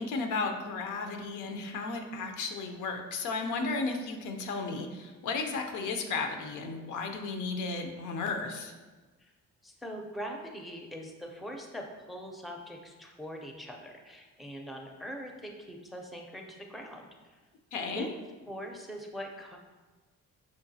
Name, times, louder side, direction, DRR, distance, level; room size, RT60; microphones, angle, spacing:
voice 1, 0.0-8.7 17.7-18.1, left 4 dB, 80° left, 5 dB, 0.6 m, -34 dB
voice 2, 9.6-17.4 17.9-18.1 18.5-19.6, equal, ahead, 2 dB, 0.4 m, -42 dB
5.7 x 2.3 x 2.6 m, 1.2 s
cardioid pair, 90°, 30 cm